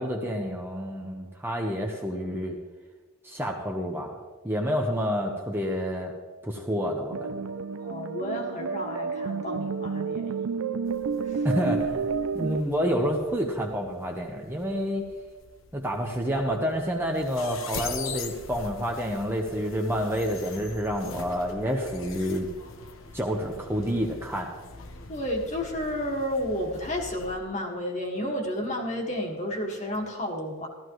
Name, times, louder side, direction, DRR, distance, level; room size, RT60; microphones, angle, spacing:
voice 1, 0.0-2.6 3.2-6.1 6.4-7.4 11.4-12.1 12.3-15.0 15.7-22.5 23.1-24.5, equal, 10° right, 0 dB, 0.9 m, -29 dB
sound 1, 7.1-12.6, right 5 dB, 85° right, 0.4 m, -30 dB
voice 2, 7.8-10.7 11.2-11.5 25.1-30.7, left 1 dB, 35° left, 0 dB, 1.8 m, -32 dB
sound 2, 10.9-27.4, left 4 dB, 70° left, 1.0 m, -43 dB
15.0 x 13.5 x 3.2 m, 1.4 s
head